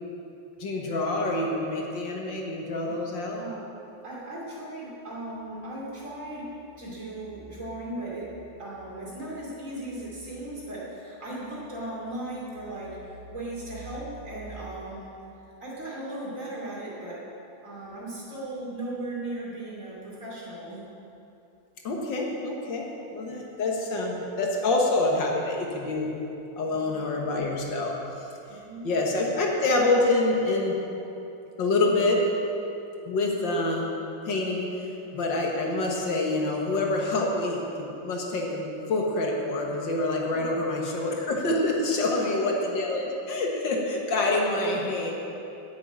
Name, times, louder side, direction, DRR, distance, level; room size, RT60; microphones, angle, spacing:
voice 1, 0.6-3.4 21.8-26.1 26.6-28.0 28.8-30.8 31.6-32.2 33.1-33.9 34.2-45.1, left 2 dB, 70° left, -1 dB, 2.1 m, -26 dB
voice 2, 4.0-8.3 8.6-15.1 15.6-17.2 17.6-20.8 26.8-27.0 28.5-28.9 40.3-40.4 42.0-42.5, right 1 dB, 40° right, -5 dB, 3.0 m, -37 dB
8.9 x 8.6 x 8.9 m, 2.8 s
omnidirectional pair, 2.2 m